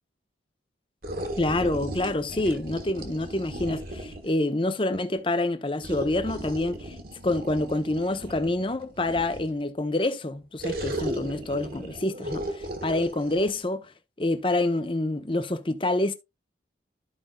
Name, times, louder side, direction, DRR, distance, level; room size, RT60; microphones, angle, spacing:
sound 1, 1.0-4.4 5.8-9.6 10.6-13.5, right 1 dB, 50° right, 1.6 m, -36 dB
voice 1, 1.4-7.0 7.2-13.9 14.2-16.1, left 2 dB, 30° left, 0.7 m, -27 dB
13.5 x 5.2 x 2.2 m
head